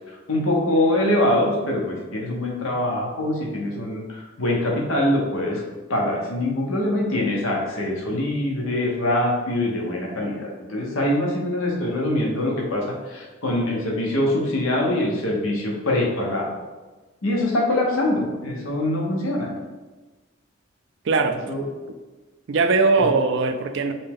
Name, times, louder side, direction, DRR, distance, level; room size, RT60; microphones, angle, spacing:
voice 1, 0.1-5.6 5.9-16.5 17.2-19.5 21.5-21.6 23.0-23.1, left 1 dB, 80° left, -2 dB, 0.9 m, -24 dB
voice 2, 21.0-21.4 22.5-23.9, right 4 dB, 60° right, 7 dB, 0.4 m, -20 dB
5.4 x 2.2 x 3.5 m, 1.2 s
head